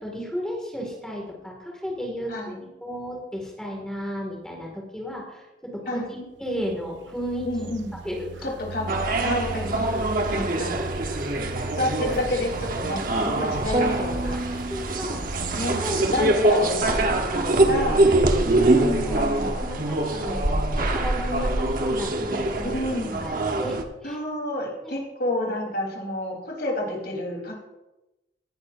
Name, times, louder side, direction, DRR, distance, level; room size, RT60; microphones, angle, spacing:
voice 1, 0.0-2.5 2.8-7.5 8.0-8.5 10.2-10.5 11.2-11.4 13.3-13.4 14.7-15.2 15.8-16.1 17.2-17.6 18.4-19.2 19.5-20.4 20.7-22.7 23.2-23.3 23.6-24.2 24.8-25.0, equal, 5° left, -2 dB, 2.1 m, -34 dB
voice 2, 2.3-2.6 5.9-6.1 7.4-7.9 8.4-8.9 9.2-10.0 10.3-10.7 11.8-14.4 15.1-15.8 16.1-18.0 18.7-19.6 20.1-20.6 22.6-23.2 24.0-27.5, left 1 dB, 60° left, -1 dB, 3.7 m, -30 dB
sound 1, 6.4-16.1, right 2 dB, 90° right, 0.6 m, -38 dB
sound 2, 8.9-23.8, right 2 dB, 50° right, 1.1 m, -24 dB
sound 3, 13.7-15.7, right 2 dB, 35° right, 0.6 m, -30 dB
17.5 x 10.5 x 2.6 m, 0.99 s
head